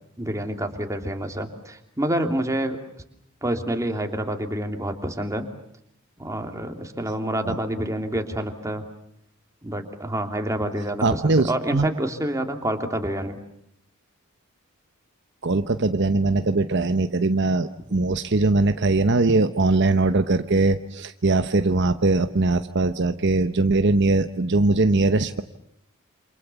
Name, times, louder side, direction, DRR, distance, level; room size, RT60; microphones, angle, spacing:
voice 1, 0.2-2.8 3.4-5.5 6.2-8.9 9.6-13.4, right 1 dB, 15° right, 4 dB, 3.0 m, -28 dB
voice 2, 11.0-11.9 15.4-25.4, right 3 dB, 55° right, 9 dB, 1.0 m, -21 dB
28.5 x 27.0 x 7.1 m, 0.75 s
head